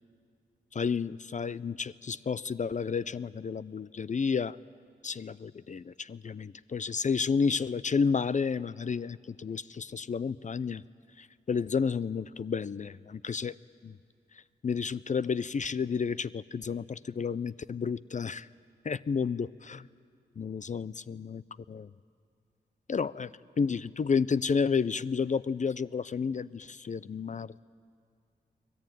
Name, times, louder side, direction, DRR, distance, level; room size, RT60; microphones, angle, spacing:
voice 1, 0.7-4.6 5.0-10.8 11.2-13.6 13.8-14.0 14.3-18.5 18.8-19.9 20.4-21.4 21.7-21.9 22.9-23.3 23.6-27.5, left 5 dB, 45° left, 17 dB, 0.5 m, -31 dB
24.0 x 19.0 x 9.2 m, 2.4 s
cardioid pair, 55°, 18 cm